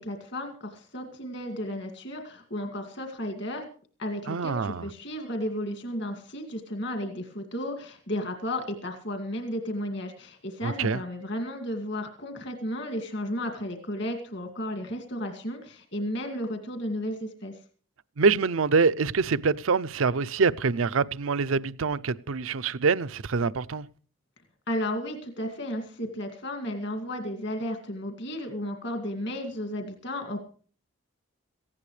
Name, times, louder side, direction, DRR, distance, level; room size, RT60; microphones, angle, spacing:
voice 1, 0.0-3.6 4.0-17.6 24.7-30.4, left 1 dB, 60° left, 2.3 m, -33 dB
voice 2, 4.3-4.9 10.6-11.0 18.2-23.9, right 4 dB, 85° right, 0.6 m, -25 dB
18.5 x 15.5 x 3.3 m
head